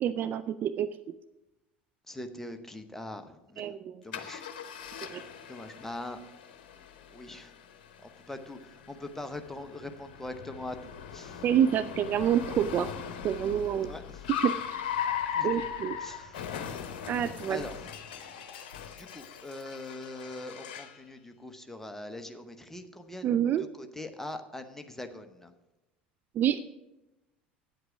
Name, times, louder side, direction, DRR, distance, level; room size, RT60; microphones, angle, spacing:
voice 1, 0.0-0.9 3.6-4.1 5.1-5.2 11.4-12.9 13.2-13.9 14.4-14.5 15.4-16.0 17.1-17.6 23.2-23.6 26.4-26.6, right 9 dB, 35° right, 12 dB, 0.4 m, -27 dB
voice 2, 2.1-3.6 4.0-4.4 5.5-6.2 7.1-7.5 8.3-11.4 13.8-14.2 15.3-15.5 16.0-16.4 17.5-17.9 19.0-23.3 23.6-25.5, left 1 dB, 5° left, 7 dB, 0.9 m, -42 dB
Car, 4.1-21.0, left 8 dB, 60° left, 0.9 m, -39 dB
9.2 x 7.8 x 6.0 m, 0.97 s
figure-of-eight pair, 70°, 5 cm